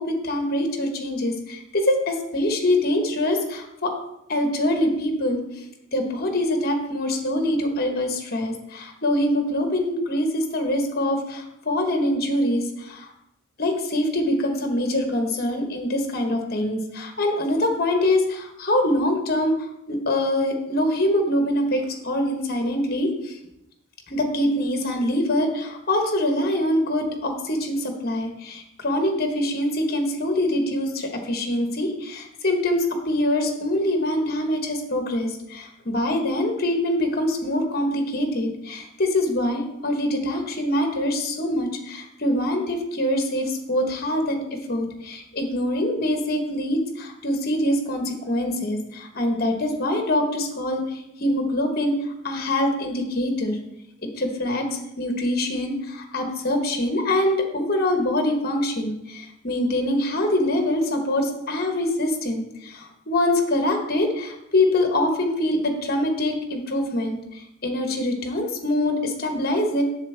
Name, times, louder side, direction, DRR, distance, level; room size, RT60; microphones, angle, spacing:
voice 1, 0.0-3.9 4.3-5.4 5.9-13.1 13.6-19.6 19.9-23.4 24.1-51.9 52.2-53.6 54.2-69.8, left 1 dB, 50° left, 4 dB, 1.1 m, -24 dB
7.3 x 7.0 x 3.4 m, 0.83 s
head